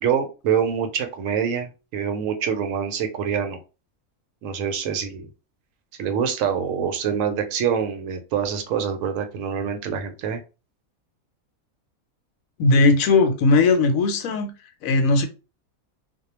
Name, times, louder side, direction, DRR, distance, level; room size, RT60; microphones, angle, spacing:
voice 1, 0.0-3.6 4.4-5.3 6.0-10.4, right 7 dB, 70° right, 0.9 m, -25 dB
voice 2, 12.6-14.5 14.8-15.3, left 3 dB, 80° left, 1.0 m, -18 dB
2.3 x 2.1 x 2.9 m
omnidirectional pair, 1.4 m